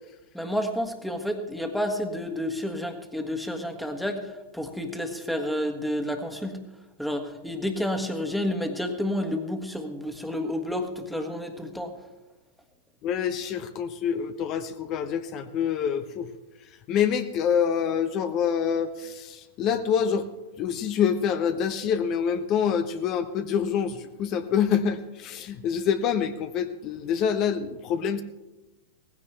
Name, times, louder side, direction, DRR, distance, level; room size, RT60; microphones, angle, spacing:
voice 1, 0.3-6.6 7.0-11.9, left 1 dB, ahead, 5 dB, 1.6 m, -30 dB
voice 2, 13.0-16.3 16.9-20.3 20.6-28.2, left 8 dB, 40° left, 10 dB, 0.9 m, -26 dB
17.0 x 15.5 x 3.4 m, 1.1 s
hypercardioid pair, 105°, 0 cm